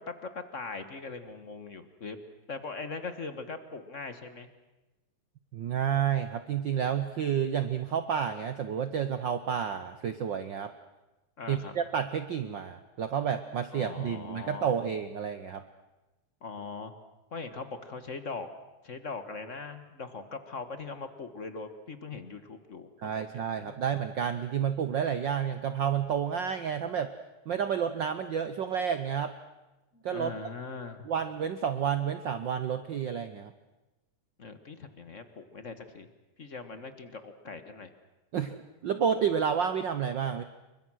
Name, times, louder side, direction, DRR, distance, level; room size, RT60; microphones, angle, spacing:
voice 1, 0.1-2.2 2.5-4.5 11.4-11.7 13.7-14.7 16.4-16.9 17.3-18.5 18.8-22.9 23.5-23.8 29.9-31.1 34.4-36.1 36.4-37.9, left 4 dB, 40° left, 9 dB, 1.1 m, -40 dB
voice 2, 5.5-10.7 11.5-15.6 23.0-27.1 27.5-29.3 30.0-30.4 31.0-33.5 38.3-40.4, right 8 dB, 85° right, 10 dB, 1.0 m, -30 dB
29.0 x 23.5 x 6.3 m, 1.1 s
omnidirectional pair, 3.4 m